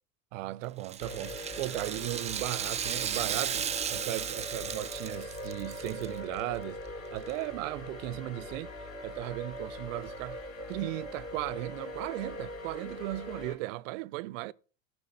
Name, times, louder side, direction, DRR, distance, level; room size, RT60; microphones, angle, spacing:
voice 1, 0.3-6.8 7.1-10.4 10.7-14.5, right 18 dB, 65° right, 0.6 m, -37 dB
Rattle (instrument), 0.8-6.1 6.4-6.5 7.3-7.4, right 8 dB, 15° right, 0.5 m, -35 dB
sound 1, 1.0-13.5, left 1 dB, 35° left, 3.4 m, -42 dB
14.0 x 5.0 x 5.2 m
hypercardioid pair, 95°, 41 cm